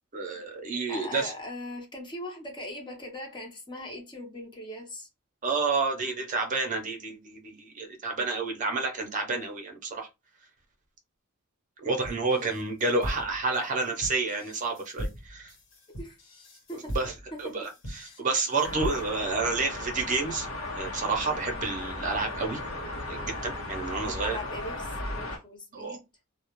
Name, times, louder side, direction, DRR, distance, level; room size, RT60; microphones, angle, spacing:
voice 1, 0.1-1.3 5.4-10.1 11.8-15.5 16.9-17.1 17.4-17.7 18.0-20.5 20.8-22.6 23.1-24.4 25.7-26.0, right 3 dB, 40° right, 0.6 m, -29 dB
voice 2, 0.9-5.1 12.3-12.6 13.0-13.3 15.9-16.2 16.7-16.9 17.3-18.2 23.9-26.0, left 1 dB, 25° left, 0.7 m, -41 dB
sound 1, 12.0-19.3, equal, 65° left, 1.1 m, -39 dB
sound 2, 18.6-25.4, left 2 dB, 90° left, 0.8 m, -36 dB
2.3 x 2.1 x 2.9 m
head